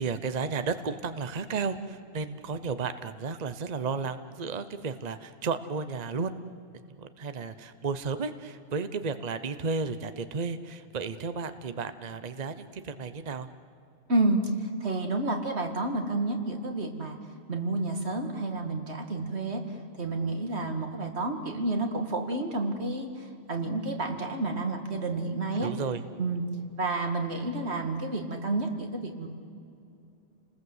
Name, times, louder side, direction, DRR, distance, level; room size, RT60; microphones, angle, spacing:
voice 1, 0.0-6.3 7.0-13.5 25.6-26.0, right 4 dB, 40° right, 11 dB, 1.0 m, -33 dB
voice 2, 14.1-14.4 14.8-17.2 17.5-19.6 20.0-25.7 26.2-26.5 26.8-29.3, right 2 dB, 85° right, 4 dB, 2.5 m, -30 dB
30.0 x 20.0 x 8.0 m, 2.6 s
omnidirectional pair, 1.1 m